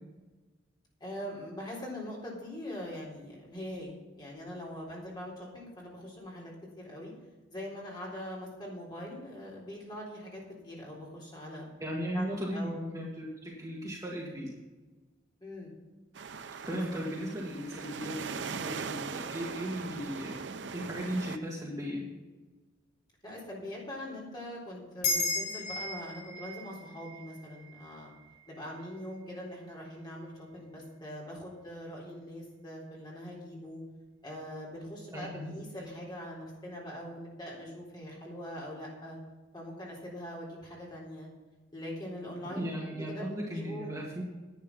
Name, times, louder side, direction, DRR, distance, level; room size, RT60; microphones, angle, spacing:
voice 1, 1.0-7.1 7.5-11.7 12.1-12.9 15.4-15.7 16.7-17.0 23.2-28.1 28.5-33.8 34.2-39.2 39.5-41.3 41.7-43.9, equal, 25° left, -4 dB, 3.7 m, -42 dB
voice 2, 11.8-14.5 16.6-22.1 35.1-35.5 42.5-44.2, equal, 15° right, -4 dB, 1.9 m, -36 dB
sound 1, 16.1-21.4, right 5 dB, 65° right, 0.5 m, -40 dB
sound 2, 25.0-29.7, left 3 dB, 85° left, 4.7 m, -36 dB
10.5 x 9.3 x 5.4 m, 1.2 s
head